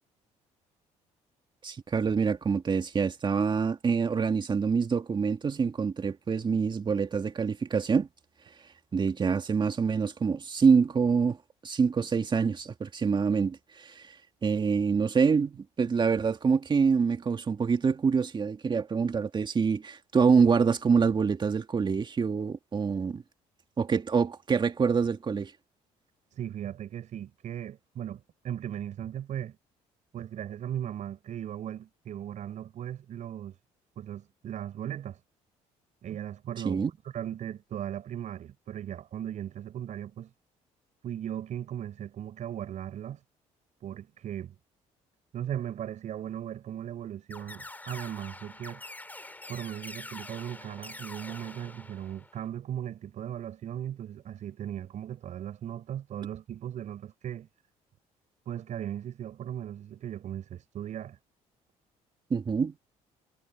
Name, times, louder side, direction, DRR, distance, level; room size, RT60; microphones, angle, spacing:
voice 1, 1.6-8.1 8.9-11.4 11.6-14.1 14.4-23.2 23.8-25.5 36.6-36.9 62.3-62.7, right 5 dB, 35° right, 2.3 m, -26 dB
voice 2, 26.3-29.6 30.1-33.6 34.0-35.2 36.0-40.3 41.0-43.2 43.8-44.6 45.3-48.8 49.5-57.5 58.5-61.2, right 10 dB, 60° right, 6.9 m, -37 dB
sound 1, 47.3-52.5, left 2 dB, 10° left, 3.6 m, -45 dB
cardioid pair, 90°, 14 cm